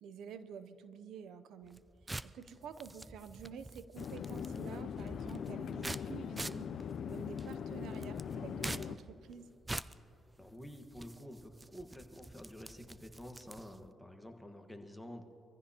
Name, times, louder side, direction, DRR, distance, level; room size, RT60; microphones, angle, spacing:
voice 1, 0.0-1.8 2.2-9.5, right 7 dB, 80° right, 11 dB, 0.6 m, -49 dB
sound 1, 1.6-13.9, right 2 dB, 15° right, 0.4 m, -47 dB
sound 2, 4.0-9.0, left 7 dB, 60° left, 0.5 m, -41 dB
voice 2, 10.4-15.2, equal, 5° left, 4 dB, 1.4 m, -49 dB
24.0 x 15.0 x 2.9 m, 2.8 s
cardioid pair, 90°, 0 cm